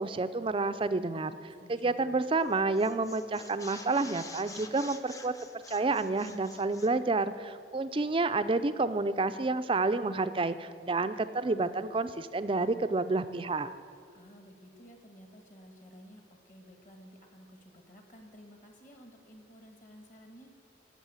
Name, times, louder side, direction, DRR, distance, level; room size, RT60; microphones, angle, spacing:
voice 1, 0.0-5.3 5.7-13.7, right 3 dB, 25° right, 12 dB, 0.4 m, -29 dB
voice 2, 1.6-2.2 14.1-20.5, equal, 40° left, 4 dB, 1.6 m, -54 dB
sound 1, 2.2-2.5 2.7-7.0, left 3 dB, 15° left, 0.6 m, -48 dB
13.5 x 6.9 x 8.9 m, 2.3 s
head